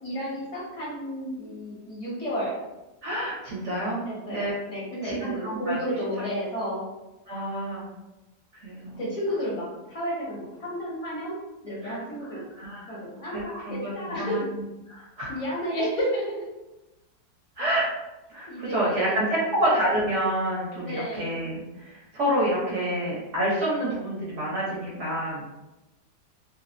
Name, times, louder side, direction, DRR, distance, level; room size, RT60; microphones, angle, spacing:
voice 1, 0.0-2.6 4.0-6.8 9.0-11.4 11.6-12.4 12.9-14.5 15.3-16.5 18.5-19.5 20.8-21.3, equal, 35° left, -6 dB, 0.6 m, -32 dB
voice 2, 3.0-4.5 5.0-5.8 7.3-7.9 8.6-9.0 11.8-12.0 12.6-13.0 13.3-14.4 14.9-15.3 17.6-17.9 18.3-25.4, right 1 dB, 55° right, -6 dB, 1.0 m, -28 dB
3.1 x 2.0 x 2.5 m, 1.0 s
omnidirectional pair, 1.8 m